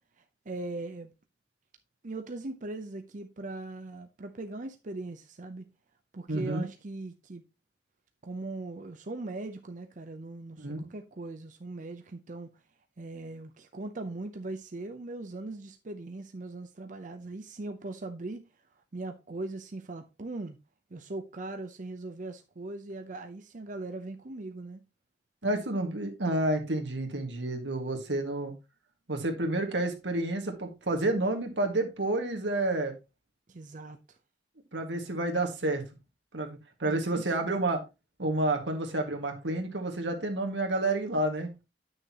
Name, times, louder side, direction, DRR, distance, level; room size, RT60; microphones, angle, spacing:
voice 1, 0.2-1.1 2.0-5.7 6.1-7.4 8.2-12.5 13.0-18.5 18.9-20.6 20.9-24.8 33.5-34.2 36.9-37.5, right 2 dB, 45° right, 0.6 m, -40 dB
voice 2, 6.3-6.7 10.6-10.9 25.4-28.5 29.1-32.9 34.7-35.8 36.3-37.8 38.2-41.5, right 2 dB, 90° right, 1.8 m, -30 dB
9.3 x 6.4 x 2.9 m
head